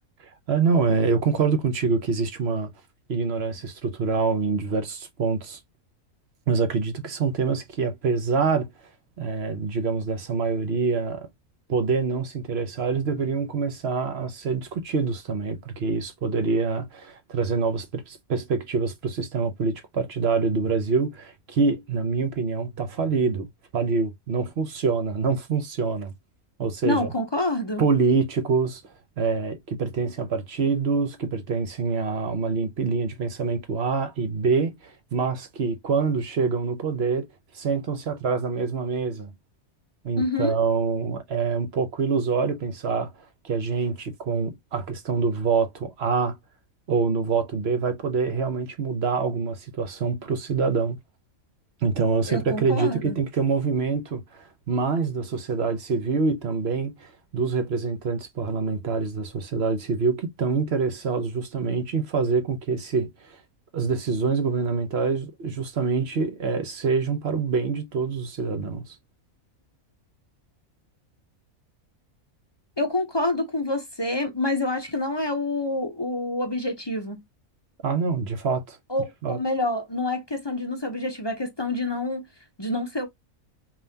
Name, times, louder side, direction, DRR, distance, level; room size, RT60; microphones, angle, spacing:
voice 1, 0.5-2.7 3.1-5.6 6.5-8.7 9.2-11.3 11.7-23.5 23.7-26.1 26.6-27.1 27.8-28.8 29.2-37.3 37.5-39.3 40.0-43.1 43.4-46.4 46.9-51.0 51.8-63.4 63.7-69.0 77.8-78.8 79.2-79.4, right 4 dB, 55° right, 0.9 m, -25 dB
voice 2, 26.8-27.8 40.2-40.5 52.3-53.1 72.8-77.2 78.9-82.2 82.6-83.1, left 2 dB, 25° left, 0.7 m, -27 dB
5.4 x 2.5 x 2.7 m
omnidirectional pair, 1.5 m